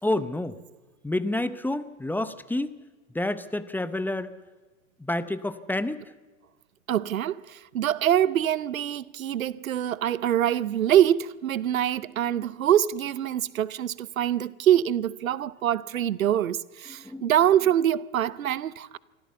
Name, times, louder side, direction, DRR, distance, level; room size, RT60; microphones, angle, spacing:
voice 1, 0.0-0.6 1.0-2.8 3.1-4.3 5.0-6.0 17.0-17.3, left 1 dB, 5° left, 0.7 m, -29 dB
voice 2, 6.9-19.0, right 11 dB, 85° right, 0.7 m, -24 dB
24.5 x 15.0 x 7.1 m
hypercardioid pair, 95°, 40 cm